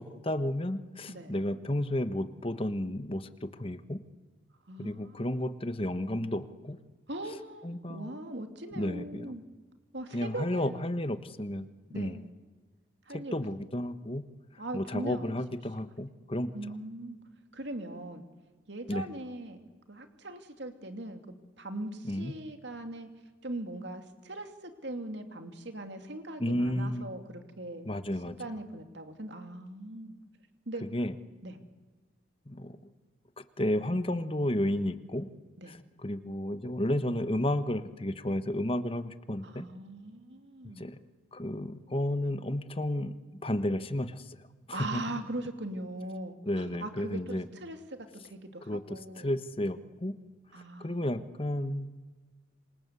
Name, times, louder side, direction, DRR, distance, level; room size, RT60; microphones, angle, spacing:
voice 1, 0.0-4.0 4.8-6.8 7.6-8.1 8.8-9.3 10.1-12.2 13.1-14.2 14.7-16.5 18.9-19.1 22.0-22.3 26.4-27.1 27.8-28.4 30.8-31.1 32.5-32.8 33.4-35.3 35.7-39.6 40.6-41.0 41.3-44.4 44.7-45.0 46.5-47.4 48.7-50.2 50.8-51.9, left 1 dB, 30° left, 11 dB, 1.2 m, -32 dB
voice 2, 4.7-5.3 7.1-9.4 9.9-10.7 11.9-12.2 13.1-13.4 14.6-15.3 16.5-17.2 17.5-18.2 18.7-21.2 21.6-23.1 23.4-27.9 28.4-30.1 30.7-30.8 31.4-31.6 35.6-35.8 39.4-40.9 44.7-48.0 48.2-49.3 50.5-51.0, right 1 dB, 65° right, 6 dB, 2.7 m, -40 dB
27.5 x 24.5 x 8.3 m, 1.3 s
head